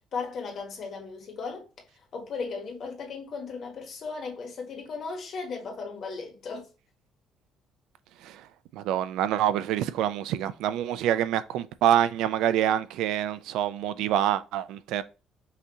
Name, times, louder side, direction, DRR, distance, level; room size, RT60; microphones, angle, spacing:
voice 1, 0.1-1.7 2.1-6.7, left 4 dB, 40° left, 1.4 m, -36 dB
voice 2, 8.7-15.0, right 11 dB, 85° right, 0.4 m, -26 dB
5.7 x 2.7 x 2.9 m
cardioid pair, 170°, 0 cm